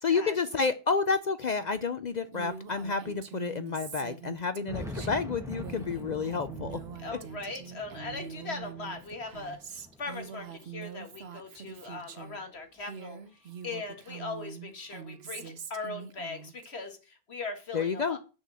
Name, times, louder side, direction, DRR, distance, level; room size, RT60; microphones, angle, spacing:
voice 1, 0.0-6.8 17.7-18.2, left 5 dB, 50° left, 12 dB, 0.6 m, -30 dB
sound 1, 0.8-0.9 1.0-1.1 2.0-2.1 2.6-2.7 4.3-10.7 11.1-12.1, equal, 5° right, 1.1 m, -44 dB
Female speech woman speaking, 2.3-12.4 12.8-16.7, right 7 dB, 75° right, 1.2 m, -44 dB
voice 2, 7.0-13.2 13.6-18.2, left 3 dB, 85° left, 6 dB, 2.1 m, -40 dB
8.2 x 6.8 x 6.3 m, 0.33 s
omnidirectional pair, 1.1 m